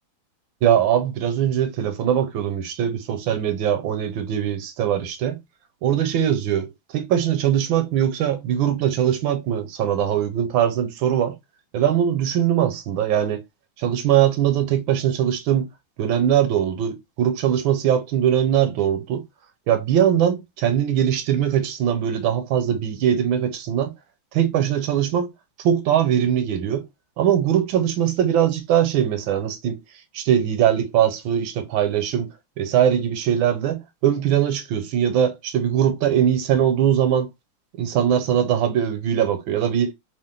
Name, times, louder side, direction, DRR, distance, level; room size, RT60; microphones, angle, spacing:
voice 1, 0.6-5.4 5.8-11.3 11.7-13.4 13.8-15.7 16.0-19.2 19.7-23.9 24.3-25.3 25.6-26.9 27.2-29.8 30.1-37.3 37.8-39.9, right 10 dB, 80° right, 1.4 m, -21 dB
3.2 x 2.4 x 3.6 m
omnidirectional pair, 2.2 m